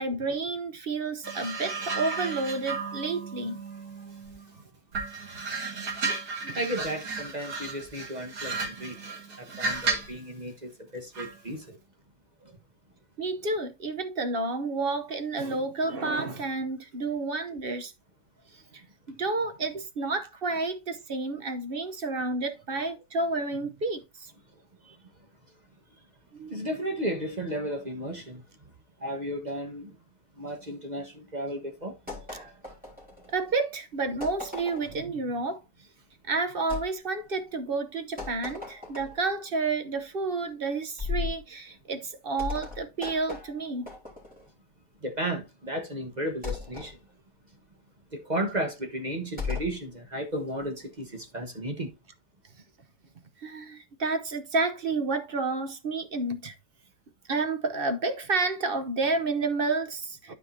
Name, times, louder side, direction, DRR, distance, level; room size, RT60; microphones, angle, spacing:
voice 1, 0.0-3.6 6.4-6.6 13.2-17.9 18.7-18.8 19.1-24.3 26.3-26.6 33.3-35.6 36.2-43.9 53.4-56.5 57.3-60.3, right 3 dB, 45° right, 0.7 m, -30 dB
sound 1, 1.2-4.5 4.9-10.2 11.1-11.4, right 4 dB, 60° right, 2.4 m, -34 dB
voice 2, 6.5-9.0 9.4-11.8 24.8-25.0 26.5-28.4 29.0-30.0 30.4-32.0 45.0-47.0 48.1-51.9, right 1 dB, 25° right, 1.2 m, -34 dB
sound 2, 32.1-33.5 34.2-35.0 36.7-36.9 38.2-39.3 41.0-41.4 42.4-44.5 46.4-46.9 49.4-49.8, left 5 dB, 5° right, 3.3 m, -37 dB
12.5 x 5.0 x 2.7 m
omnidirectional pair, 1.9 m